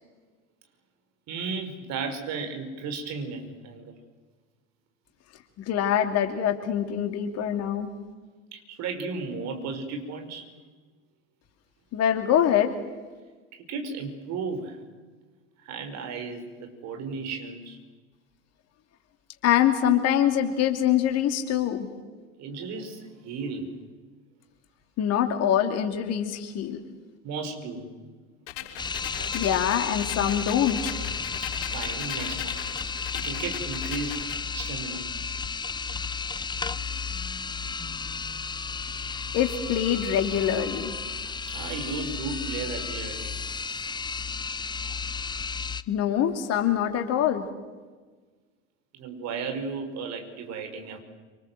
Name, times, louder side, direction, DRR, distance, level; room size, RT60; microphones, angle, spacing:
voice 1, 1.3-4.0 8.5-10.5 13.5-14.8 15.6-17.8 22.4-23.8 27.2-27.9 31.7-32.6 33.1-35.1 36.2-36.3 41.2-43.4 44.8-45.0 48.9-51.0, right 4 dB, 50° right, 6 dB, 5.4 m, -35 dB
voice 2, 5.7-7.9 11.9-12.7 19.4-21.9 25.0-26.8 29.3-31.0 39.1-40.9 45.9-47.5, left 10 dB, 45° left, 6 dB, 2.6 m, -24 dB
sound 1, 28.5-34.4, left 11 dB, 65° left, 6.0 m, -39 dB
sound 2, 28.8-45.8, left 5 dB, 10° left, 0.9 m, -33 dB
27.0 x 26.0 x 7.8 m, 1.4 s
figure-of-eight pair, 75°, 35 cm